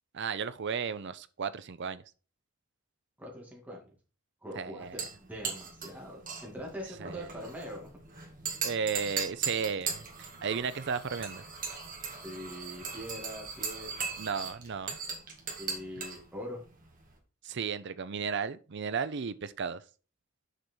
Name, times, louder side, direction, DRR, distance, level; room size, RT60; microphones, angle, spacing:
voice 1, 0.1-2.0 4.6-5.0 7.0-7.3 8.6-11.4 14.2-15.0 17.4-19.8, right 6 dB, 60° right, 0.5 m, -34 dB
voice 2, 3.2-3.8 4.4-8.0 12.2-14.1 15.6-16.6, equal, 10° right, 2.2 m, -43 dB
sound 1, 4.8-17.2, right 5 dB, 40° right, 1.9 m, -39 dB
6.7 x 4.9 x 4.5 m
head